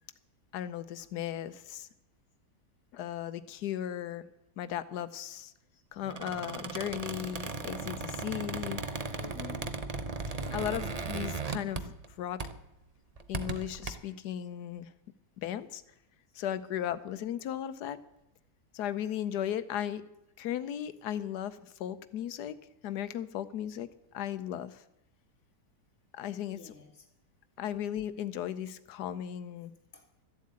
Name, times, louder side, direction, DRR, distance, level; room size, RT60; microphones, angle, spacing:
voice 1, 0.5-1.9 2.9-4.3 4.6-5.5 5.9-8.8 10.5-12.4 13.3-14.9 15.4-15.8 16.3-18.0 18.7-20.0 20.4-22.5 22.8-23.9 24.1-24.8 26.1-26.7 27.6-29.7, left 10 dB, 75° left, 14 dB, 1.3 m, -36 dB
Squeak, 6.0-12.1 12.4-12.7 13.2-13.9, right 4 dB, 35° right, 0.6 m, -37 dB
voice 2, 9.2-10.4 26.5-26.9 29.9-30.2, left 6 dB, 45° left, 5 dB, 1.8 m, -50 dB
13.5 x 7.5 x 8.6 m, 0.87 s
omnidirectional pair, 1.8 m